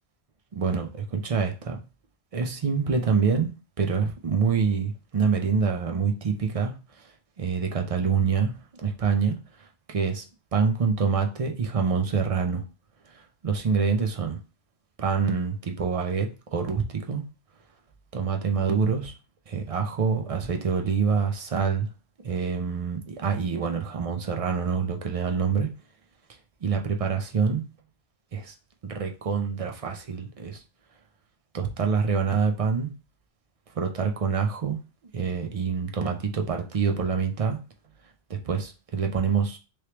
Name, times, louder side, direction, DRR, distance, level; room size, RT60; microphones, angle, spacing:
voice 1, 0.5-1.8 2.3-3.5 3.8-6.7 7.4-8.5 8.8-9.4 9.9-10.2 10.5-12.6 13.1-14.4 15.0-17.2 18.1-19.1 19.5-21.9 22.2-25.7 26.6-27.6 28.3-28.5 28.8-30.6 31.5-32.9 33.7-34.8 35.1-37.6 38.3-39.6, right 5 dB, 45° right, 0.5 m, -26 dB
3.2 x 3.2 x 2.9 m
omnidirectional pair, 1.2 m